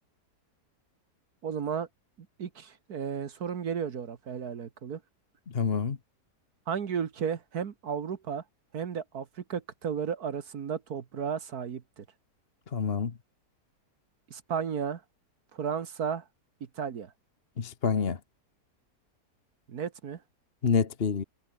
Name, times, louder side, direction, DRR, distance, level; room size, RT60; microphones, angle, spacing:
voice 1, 1.4-1.9 2.4-5.0 6.7-8.4 8.7-12.1 14.3-15.0 15.5-16.3 16.8-17.1 19.7-20.2, right 7 dB, 70° right, 1.9 m, -33 dB
voice 2, 5.5-6.0 12.7-13.1 17.6-18.2 20.6-21.2, left 6 dB, 40° left, 1.3 m, -27 dB
omnidirectional pair, 1.7 m